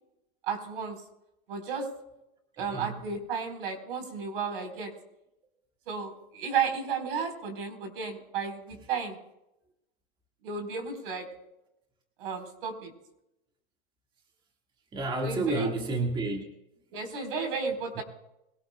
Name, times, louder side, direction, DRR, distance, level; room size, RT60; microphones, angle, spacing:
voice 1, 0.4-1.0 1.5-1.9 2.6-4.9 5.9-9.2 10.4-11.3 12.2-12.9 15.2-15.7 16.9-18.0, right 5 dB, 65° right, 5 dB, 4.1 m, -33 dB
voice 2, 14.9-16.4, right 2 dB, 15° right, 2 dB, 1.8 m, -30 dB
22.5 x 18.0 x 2.3 m, 0.87 s
hypercardioid pair, 125°, 30 cm